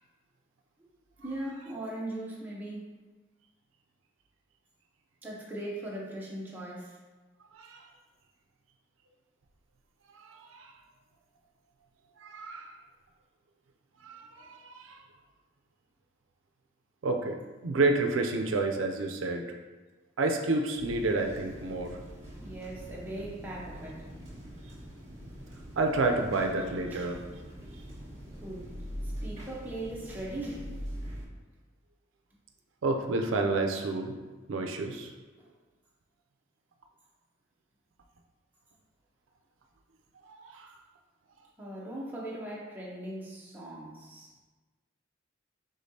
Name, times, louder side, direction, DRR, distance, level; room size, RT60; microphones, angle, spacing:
voice 1, 1.2-2.9 5.2-7.0 22.4-24.1 26.9-27.1 28.4-28.7 29.0-30.8 35.4-35.5 41.6-44.3, right 1 dB, 10° right, -5 dB, 0.8 m, -39 dB
voice 2, 10.3-10.7 12.2-12.7 14.0-15.0 17.0-17.4 17.6-19.4 20.2-21.9 25.8-27.2 32.8-34.1 34.5-35.1 40.3-40.7, right 3 dB, 85° right, 3 dB, 0.5 m, -29 dB
sound 1, 20.7-31.2, equal, 35° right, 1.4 m, -43 dB
5.2 x 3.7 x 2.7 m, 1.3 s
head